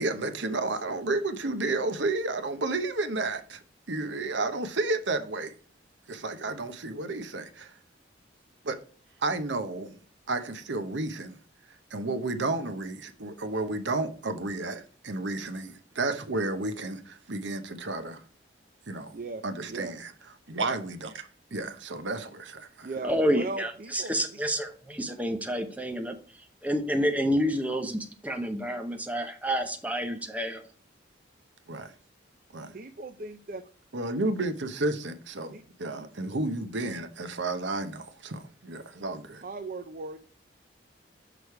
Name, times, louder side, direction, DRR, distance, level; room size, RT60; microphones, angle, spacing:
voice 1, 0.0-5.5 6.1-7.7 8.6-8.8 9.2-9.9 10.3-11.4 11.9-18.2 18.9-19.1 19.4-20.1 20.5-22.9 31.7-31.9 32.5-32.7 33.9-39.4, right 2 dB, 75° right, 0.9 m, -32 dB
voice 2, 19.1-19.9 22.8-24.4 32.7-33.6 35.5-35.6 39.4-40.2, right 3 dB, 45° right, 0.5 m, -38 dB
voice 3, 23.0-26.1 26.6-30.6, equal, 10° right, 0.8 m, -29 dB
6.2 x 5.0 x 4.7 m
head